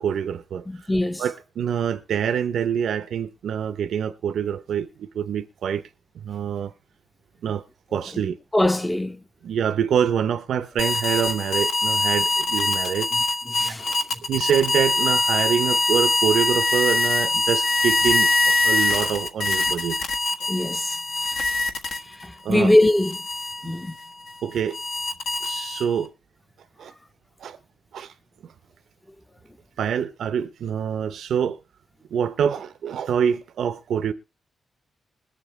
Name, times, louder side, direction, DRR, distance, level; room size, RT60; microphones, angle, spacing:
voice 1, 0.0-0.9 1.2-5.8 6.2-6.7 7.4-7.7 7.9-8.4 9.4-13.1 14.3-20.0 22.4-22.7 23.6-23.7 24.4-24.8 25.4-26.1 26.8-26.9 27.4-27.6 27.9-28.1 29.8-31.6 32.1-34.1, right 8 dB, 90° right, 0.7 m, -25 dB
voice 2, 0.7-1.2 8.5-9.2 13.5-13.9 20.5-20.9 22.2-23.2 23.6-23.9, left 1 dB, 10° left, 0.5 m, -21 dB
sound 1, 10.8-22.3 22.7-26.1, left 2 dB, 80° left, 1.4 m, -23 dB
21.0 x 7.5 x 3.2 m
wide cardioid pair, 170°, 0 cm